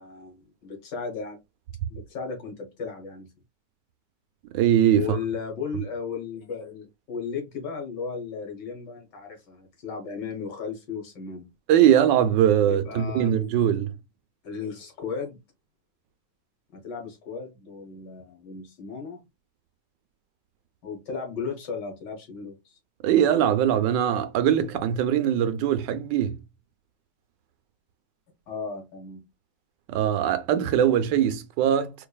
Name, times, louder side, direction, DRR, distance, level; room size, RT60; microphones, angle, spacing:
voice 1, 0.0-1.4 1.9-3.3 5.0-11.5 12.6-13.3 14.4-15.4 16.7-19.2 20.8-22.8 28.5-29.2, left 5 dB, 85° left, 2.0 m, -35 dB
voice 2, 4.5-5.0 11.7-13.9 23.0-26.4 29.9-31.9, right 10 dB, 90° right, 1.3 m, -21 dB
4.6 x 2.7 x 2.3 m
omnidirectional pair, 1.8 m